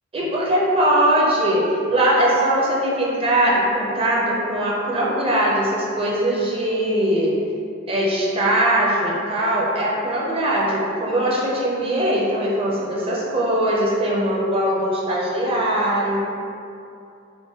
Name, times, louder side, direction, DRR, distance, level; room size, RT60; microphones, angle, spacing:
voice 1, 0.1-7.4 7.9-16.3, right 1 dB, 30° right, -4 dB, 0.5 m, -21 dB
3.5 x 2.2 x 3.5 m, 2.5 s
head